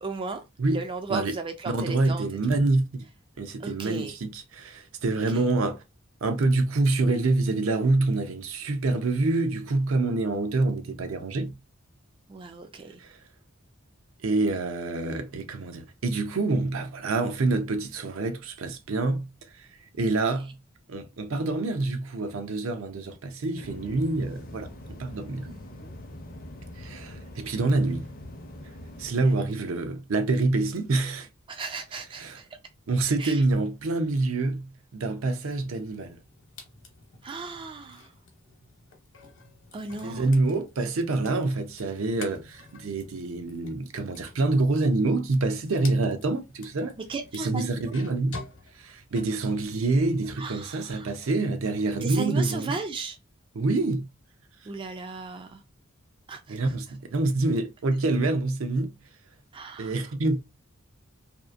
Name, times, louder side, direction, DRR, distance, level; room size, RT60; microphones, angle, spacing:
voice 1, 0.0-2.3 3.6-4.1 5.3-5.4 12.3-13.0 25.5-25.9 27.4-27.5 29.1-29.5 31.5-32.5 33.2-33.4 37.2-38.1 39.7-40.3 47.1-47.7 50.4-51.1 52.0-53.2 54.7-55.6 56.3-56.7 59.5-59.9, right 4 dB, 25° right, 0.3 m, -35 dB
voice 2, 1.7-3.0 3.4-5.8 6.2-11.6 13.0-13.2 14.2-19.3 19.5-19.7 20.0-20.6 20.9-24.7 25.0-25.5 26.8-28.1 29.0-31.3 32.2-32.4 32.9-36.2 40.0-46.9 47.3-48.4 48.7-52.8 53.5-54.1 56.5-58.9 59.8-60.4, right 2 dB, 70° right, 0.5 m, -26 dB
sound 1, 23.6-29.1, left 1 dB, 45° left, 0.5 m, -43 dB
sound 2, 35.4-50.5 50.9-52.6, left 4 dB, 65° left, 0.9 m, -49 dB
2.7 x 2.4 x 2.4 m
head